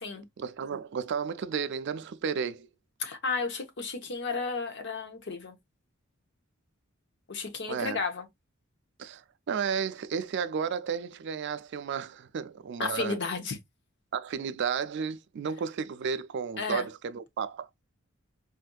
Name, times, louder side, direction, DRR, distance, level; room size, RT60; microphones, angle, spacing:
voice 1, 0.4-2.7 7.7-8.0 9.0-13.2 14.1-17.7, right 6 dB, 55° right, 0.4 m, -33 dB
voice 2, 3.0-5.5 7.3-8.3 12.8-13.6 16.6-16.9, left 4 dB, 60° left, 0.9 m, -33 dB
4.3 x 2.6 x 2.2 m
head